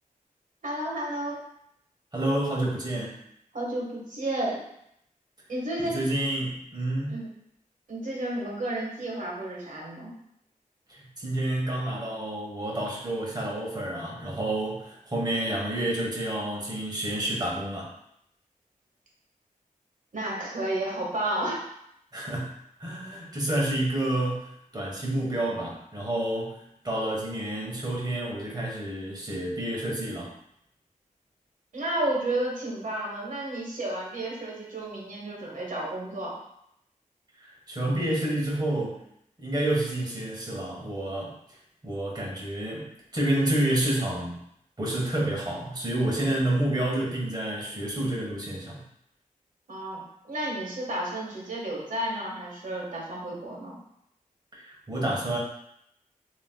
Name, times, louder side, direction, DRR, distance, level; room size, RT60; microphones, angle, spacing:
voice 1, 0.6-1.4 3.5-4.6 5.5-6.0 7.1-7.3 7.9-10.1 20.1-21.6 31.7-36.4 49.7-53.8, right 1 dB, 65° right, -3 dB, 1.5 m, -32 dB
voice 2, 2.1-3.2 5.8-7.2 10.9-17.9 22.1-22.5 22.8-30.3 37.4-39.0 39.4-41.3 41.8-42.9 43.1-44.4 44.8-48.8 54.5-55.4, right 1 dB, 30° right, -3 dB, 1.4 m, -29 dB
7.0 x 3.1 x 2.3 m, 0.75 s
wide cardioid pair, 130°, 14 cm